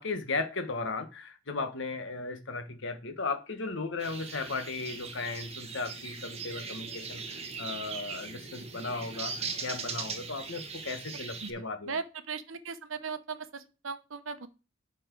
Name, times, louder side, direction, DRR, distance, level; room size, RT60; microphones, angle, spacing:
voice 1, 0.0-7.2 7.6-12.0, left 3 dB, 65° left, 1.3 m, -36 dB
sound 1, 4.0-11.5, right 5 dB, 35° right, 1.5 m, -40 dB
voice 2, 11.9-14.5, right 5 dB, 80° right, 0.9 m, -38 dB
10.5 x 4.6 x 4.5 m
head